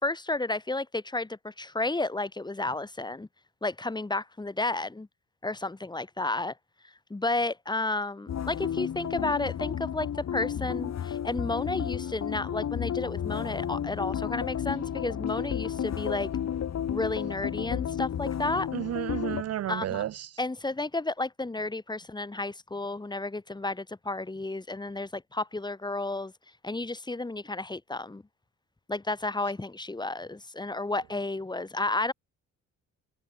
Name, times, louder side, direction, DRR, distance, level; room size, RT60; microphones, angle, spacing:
voice 1, 0.0-3.3 3.6-5.1 5.4-6.5 7.1-16.3 16.9-18.7 19.7-20.0 20.4-26.3 26.6-28.2 28.9-32.1, left 2 dB, 15° left, 1.8 m, -32 dB
sound 1, 8.3-19.4, left 9 dB, 60° left, 6.0 m, -32 dB
voice 2, 18.7-20.3, right 12 dB, 55° right, 0.6 m, -32 dB
cardioid pair, 90°, 30 cm